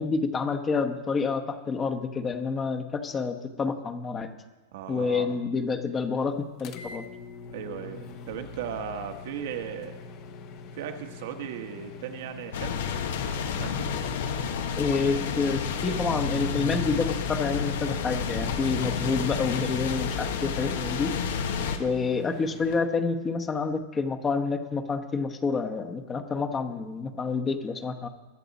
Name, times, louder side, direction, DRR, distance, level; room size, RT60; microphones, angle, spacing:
voice 1, 0.0-4.3 4.9-7.1 14.8-21.2 21.8-28.1, left 4 dB, 15° left, 6 dB, 1.0 m, -28 dB
voice 2, 4.7-5.3 7.5-10.0 10.8-12.8 13.3-13.9, right 8 dB, 65° right, 5 dB, 1.4 m, -37 dB
sound 1, 6.6-22.8, left 4 dB, 45° left, 1.0 m, -44 dB
sound 2, 12.5-21.8, left 6 dB, 75° left, 1.2 m, -30 dB
21.5 x 7.6 x 4.1 m, 1.2 s
supercardioid pair, 150°, 0 cm